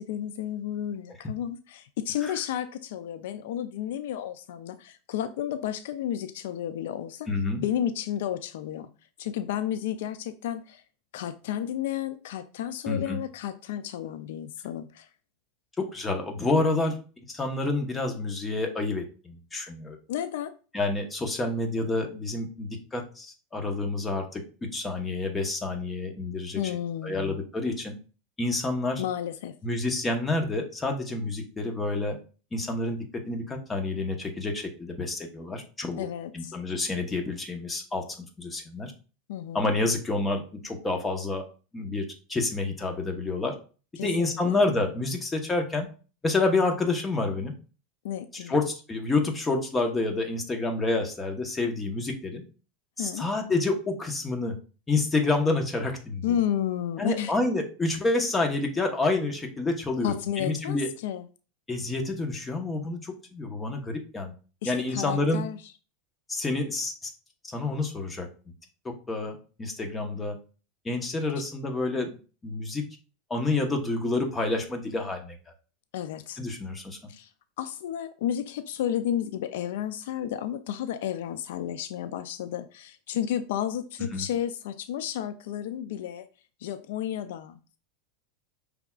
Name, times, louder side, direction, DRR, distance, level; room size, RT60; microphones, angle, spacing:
voice 1, 0.0-7.3 7.6-8.9 9.2-10.8 11.1-15.1 20.1-20.5 26.6-27.4 29.0-29.5 36.0-36.5 39.3-39.7 44.0-44.6 48.0-48.6 53.0-53.3 56.2-57.3 60.0-61.3 64.6-65.6 75.9-76.4 77.1-77.3 77.6-86.3 86.6-87.8, left 10 dB, 75° left, 0.4 m, -32 dB
voice 2, 7.3-7.6 12.9-13.2 15.8-16.9 17.3-20.0 20.7-24.4 24.7-26.6 27.0-27.9 28.4-29.0 29.6-32.2 32.5-36.1 36.3-38.0 38.4-38.9 39.5-41.4 41.7-43.5 44.0-45.9 46.2-47.5 48.5-52.4 53.0-54.6 54.9-56.3 57.0-60.9 61.7-64.3 64.6-65.5 66.3-67.1 67.5-68.3 68.8-70.4 70.8-72.2 72.4-72.8 73.3-75.4 76.4-77.0 84.1-84.3, left 2 dB, 15° left, 1.0 m, -28 dB
5.6 x 3.5 x 2.3 m
supercardioid pair, 130°, 0 cm